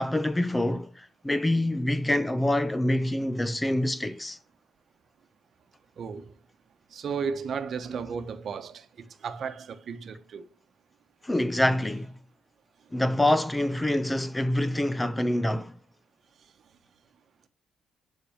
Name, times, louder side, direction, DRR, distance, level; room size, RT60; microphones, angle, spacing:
voice 1, 0.0-4.4 11.2-12.1 12.9-15.8, left 1 dB, 10° left, 0.7 m, -26 dB
voice 2, 6.0-6.3 6.9-10.5, right 6 dB, 55° right, 1.1 m, -34 dB
11.5 x 4.2 x 7.2 m
cardioid pair, 90°, 0 cm